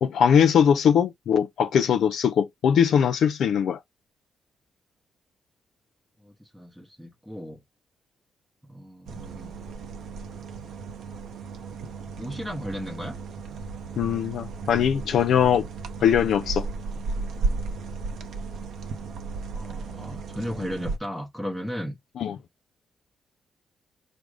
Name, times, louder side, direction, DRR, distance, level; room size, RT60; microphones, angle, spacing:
voice 1, 0.0-3.8 14.0-15.6 16.0-16.7 22.2-22.4, left 8 dB, 65° left, 0.4 m, -21 dB
voice 2, 6.2-7.6 8.6-9.5 12.1-13.2 19.5-22.0, equal, 5° right, 0.8 m, -35 dB
sound 1, 9.1-21.0, right 4 dB, 75° right, 0.7 m, -34 dB
5.0 x 2.1 x 4.7 m
cardioid pair, 150°, 0 cm